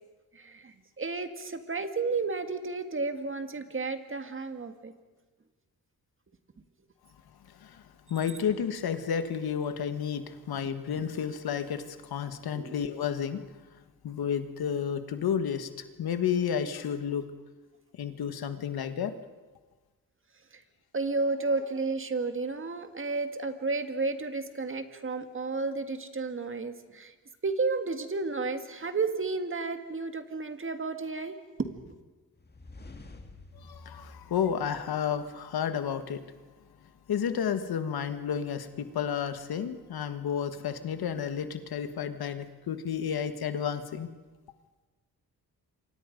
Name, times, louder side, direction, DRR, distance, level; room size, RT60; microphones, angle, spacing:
voice 1, 0.3-4.9 12.6-12.7 20.9-27.1 27.4-31.7, right 3 dB, 35° right, 8 dB, 1.9 m, -32 dB
voice 2, 7.5-7.8 8.1-13.5 13.7-17.3 17.9-19.1 33.5-36.2 37.1-44.1, left 8 dB, 85° left, 9 dB, 1.6 m, -31 dB
sound 1, 32.4-35.3, left 2 dB, 25° left, 2.1 m, -49 dB
28.0 x 25.0 x 5.3 m, 1.3 s
wide cardioid pair, 105°, 36 cm